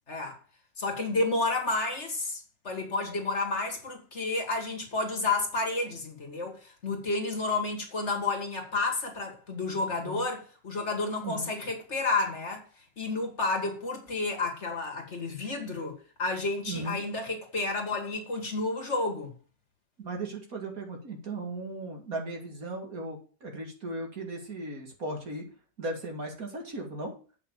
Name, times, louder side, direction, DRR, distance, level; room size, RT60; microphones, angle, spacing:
voice 1, 0.1-0.4 0.8-12.6 13.0-19.3, left 3 dB, 45° left, 2.2 m, -31 dB
voice 2, 16.7-17.0 20.0-25.4 25.8-27.1, right 2 dB, 60° right, 2.6 m, -37 dB
8.3 x 5.7 x 6.8 m
omnidirectional pair, 1.7 m